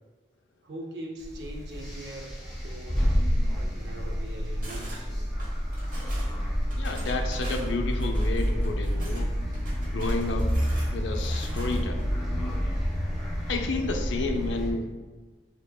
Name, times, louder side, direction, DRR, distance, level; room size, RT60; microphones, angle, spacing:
voice 1, 0.6-2.4 2.6-3.1 3.5-5.3, right 1 dB, 65° right, 2 dB, 0.6 m, -41 dB
sound 1, 1.2-14.7, equal, ahead, 1.1 m, -29 dB
sound 2, 4.6-5.0 5.4-6.3 6.7-9.2 9.5-12.0, right 1 dB, 45° right, 1.1 m, -44 dB
voice 2, 6.7-9.3 9.8-10.5 10.9-12.0 13.5-14.9, left 3 dB, 80° left, 5 dB, 0.5 m, -31 dB
6.6 x 2.9 x 2.2 m, 1.3 s
head